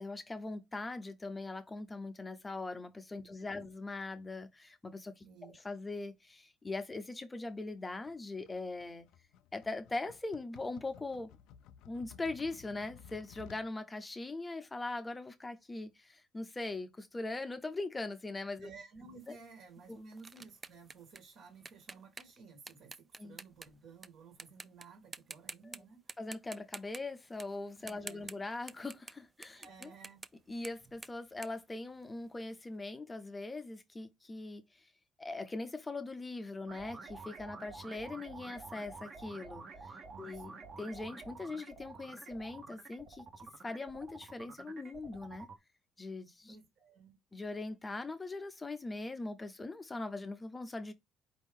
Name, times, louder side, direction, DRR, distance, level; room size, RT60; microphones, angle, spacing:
voice 1, 0.0-5.3 5.6-9.1 9.5-11.3 11.9-18.7 19.9-20.0 23.2-23.4 26.2-29.9 30.5-34.6 35.2-43.2 43.6-45.5 46.0-46.6 47.3-50.9, left 2 dB, 15° left, 0.6 m, -41 dB
voice 2, 3.2-3.7 5.2-5.6 18.6-26.1 27.8-28.4 29.5-30.2 40.1-40.7 46.5-47.2, right 4 dB, 65° right, 1.7 m, -55 dB
sound 1, 8.0-13.7, left 9 dB, 80° left, 0.4 m, -56 dB
sound 2, 19.2-24.1 24.4-24.8 25.1-25.8 26.1-32.4, right 3 dB, 20° right, 0.3 m, -49 dB
sound 3, 36.7-45.5, right 4 dB, 35° right, 1.0 m, -49 dB
4.6 x 2.6 x 3.6 m
cardioid pair, 130°, 0 cm